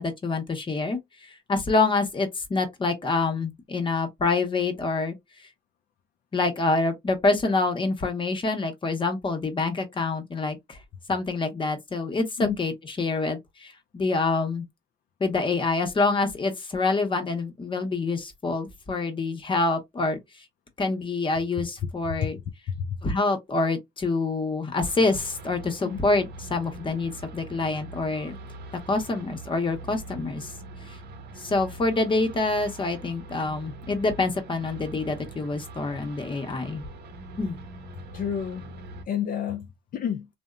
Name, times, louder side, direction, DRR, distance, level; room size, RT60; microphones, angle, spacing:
voice 1, 0.0-5.1 6.3-10.8 11.1-14.7 15.2-20.2 20.8-22.4 23.0-28.4 28.9-30.5 30.9-31.0 31.4-36.9 37.4-37.6, left 3 dB, 30° left, 0.8 m, -26 dB
voice 2, 22.7-23.0 25.8-26.0 38.1-38.6 39.1-40.3, left 8 dB, 50° left, 0.4 m, -29 dB
sound 1, 24.8-39.0, right 2 dB, 70° right, 0.7 m, -43 dB
2.8 x 2.1 x 2.3 m
cardioid pair, 90°, 18 cm